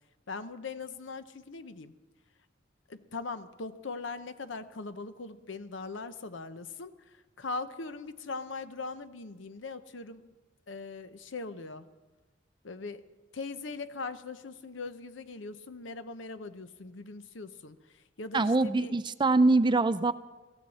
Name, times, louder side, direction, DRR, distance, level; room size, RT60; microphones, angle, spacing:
voice 1, 0.3-1.9 2.9-10.3 10.7-11.9 12.6-18.9, left 3 dB, 80° left, 0.8 m, -40 dB
voice 2, 18.3-20.1, right 3 dB, 25° right, 0.5 m, -24 dB
23.0 x 15.0 x 4.2 m
head